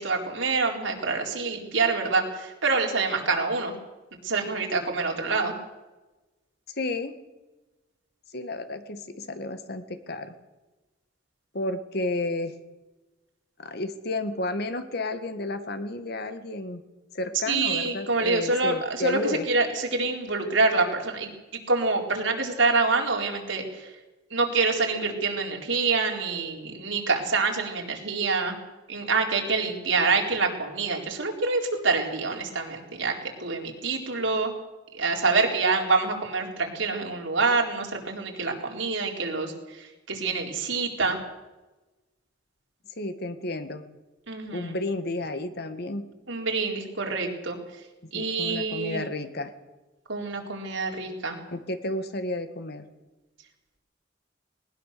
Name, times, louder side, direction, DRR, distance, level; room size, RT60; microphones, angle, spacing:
voice 1, 0.0-3.7 4.2-5.5 17.5-21.3 21.7-23.9 24.3-28.5 28.9-34.5 34.9-41.2 44.3-44.8 46.3-47.6 48.1-49.1 50.1-51.4, right 3 dB, 80° right, 1 dB, 4.2 m, -26 dB
voice 2, 6.8-7.1 8.3-10.3 11.5-12.5 13.6-16.8 17.1-19.4 43.0-43.8 44.5-46.1 48.0-49.5 51.5-52.8, left 2 dB, 55° left, 9 dB, 1.7 m, -32 dB
20.0 x 19.5 x 6.8 m, 1.1 s
head